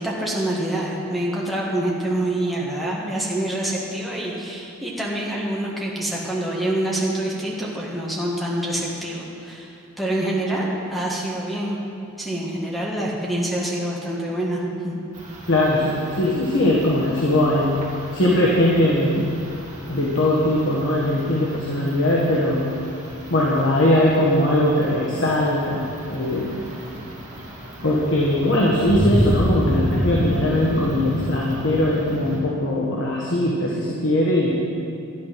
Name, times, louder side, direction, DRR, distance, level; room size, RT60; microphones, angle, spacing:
voice 1, 0.0-9.7 10.0-11.8 12.2-15.0, right 1 dB, ahead, -5 dB, 1.6 m, -26 dB
sound 1, 15.1-32.4, equal, 35° right, 2.9 m, -30 dB
voice 2, 15.5-17.7 18.1-19.3 19.9-22.7 23.3-25.8 26.1-26.6 27.8-34.6, left 1 dB, 55° left, -5 dB, 1.7 m, -20 dB
12.5 x 10.5 x 6.1 m, 2.7 s
head